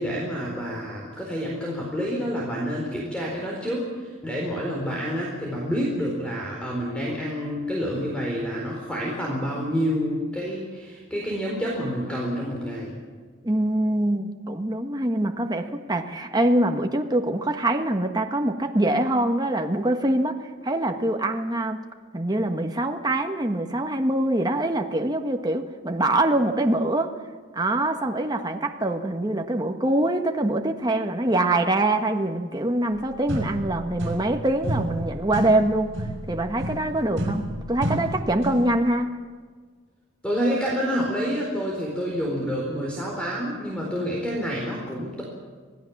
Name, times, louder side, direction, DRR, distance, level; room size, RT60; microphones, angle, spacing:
voice 1, 0.0-12.9 40.2-45.2, equal, 5° left, -3 dB, 4.3 m, -28 dB
voice 2, 13.4-21.8 22.1-27.1 27.5-35.9 36.3-39.1, right 1 dB, 20° right, 4 dB, 1.4 m, -24 dB
sound 1, 32.9-33.0 33.3-34.4 34.6-38.8, right 1 dB, 65° right, 5.5 m, -31 dB
26.5 x 18.0 x 7.3 m, 1.5 s
head